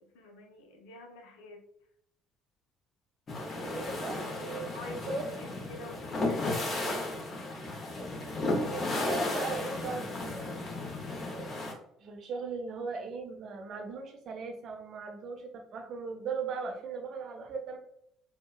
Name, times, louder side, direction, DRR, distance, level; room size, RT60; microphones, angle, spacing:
voice 1, 0.0-1.6 3.6-4.1 4.7-6.8, left 1 dB, 65° left, 3 dB, 0.6 m, -47 dB
sound 1, 3.3-11.7, left 2 dB, 35° left, 0.9 m, -34 dB
voice 2, 3.6-4.7 5.1-5.3 8.4-10.5 11.2-11.5 12.0-17.8, right 4 dB, 50° right, 4 dB, 0.7 m, -38 dB
4.5 x 2.2 x 2.4 m, 0.73 s
figure-of-eight pair, 55°, 0 cm